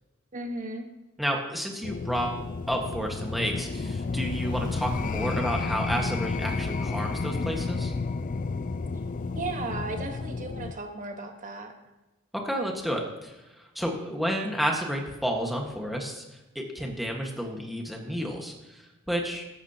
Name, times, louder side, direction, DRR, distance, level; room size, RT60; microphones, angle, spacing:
voice 1, 0.3-0.9 9.3-11.7, right 2 dB, 40° right, 4 dB, 1.3 m, -35 dB
voice 2, 1.2-7.9 12.3-16.2 16.5-19.5, equal, ahead, 0 dB, 1.5 m, -31 dB
sound 1, 1.8-10.7, left 4 dB, 40° left, 0.4 m, -31 dB
15.5 x 12.0 x 2.9 m, 1.0 s
head